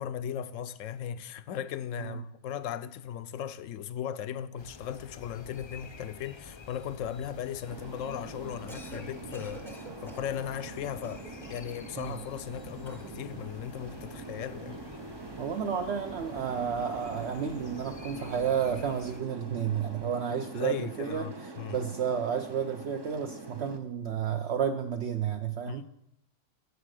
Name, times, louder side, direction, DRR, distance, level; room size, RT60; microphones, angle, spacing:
voice 1, 0.0-9.7 10.0-11.2 11.5-14.8 20.5-21.9 25.7-25.8, left 9 dB, 75° left, 1.0 m, -37 dB
sound 1, 4.6-19.2, left 4 dB, 30° left, 0.5 m, -49 dB
sound 2, 7.7-23.8, right 4 dB, 30° right, 0.5 m, -44 dB
Cough, 8.5-9.1 9.3-10.3 11.0-11.7 12.8-13.2, right 1 dB, ahead, 0.7 m, -48 dB
voice 2, 15.4-25.8, right 8 dB, 60° right, 0.9 m, -31 dB
11.0 x 7.6 x 6.5 m
omnidirectional pair, 1.4 m